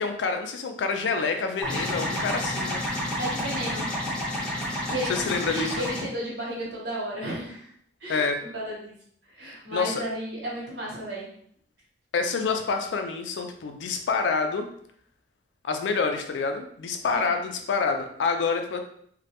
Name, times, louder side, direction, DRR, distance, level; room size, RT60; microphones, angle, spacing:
voice 1, 0.0-2.8 5.1-5.8 8.1-8.4 9.7-10.0 12.1-14.7 15.6-18.8, left 4 dB, 85° left, 5 dB, 0.4 m, -27 dB
sound 1, 1.6-6.0, left 1 dB, 5° left, 0.6 m, -30 dB
voice 2, 3.2-3.9 4.9-7.7 8.0-8.3 8.5-8.9 9.3-11.3 17.1-17.3, equal, 70° right, -5 dB, 1.0 m, -33 dB
2.2 x 2.1 x 2.8 m, 0.64 s
head